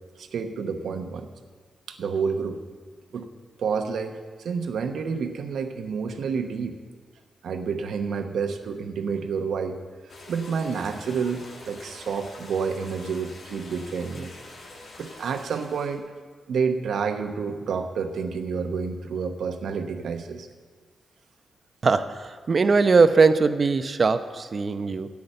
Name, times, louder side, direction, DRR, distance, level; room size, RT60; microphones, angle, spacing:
voice 1, 0.2-1.3 1.9-2.6 3.1-3.3 3.6-6.8 7.4-9.8 10.3-14.3 15.0-16.0 16.5-20.5, right 5 dB, 75° right, 7 dB, 0.9 m, -29 dB
sound 1, 10.1-16.0, left 2 dB, 70° left, 2.0 m, -45 dB
voice 2, 21.8-25.1, right 4 dB, 50° right, 10 dB, 0.7 m, -20 dB
10.5 x 8.5 x 6.6 m, 1.5 s
supercardioid pair, 50°, 0 cm